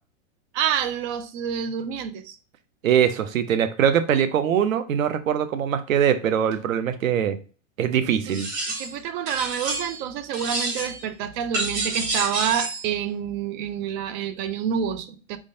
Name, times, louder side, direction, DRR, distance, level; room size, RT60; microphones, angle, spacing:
voice 1, 0.5-2.4 8.3-8.4 8.7-15.4, right 8 dB, 35° right, 0.5 m, -28 dB
voice 2, 2.8-7.4 7.8-8.5, right 9 dB, 85° right, 0.8 m, -22 dB
sound 1, 8.3-9.0 9.3-10.1 10.3-11.0 11.5-12.9, right 2 dB, 65° right, 2.1 m, -29 dB
4.6 x 3.8 x 2.6 m
hypercardioid pair, 130°, 39 cm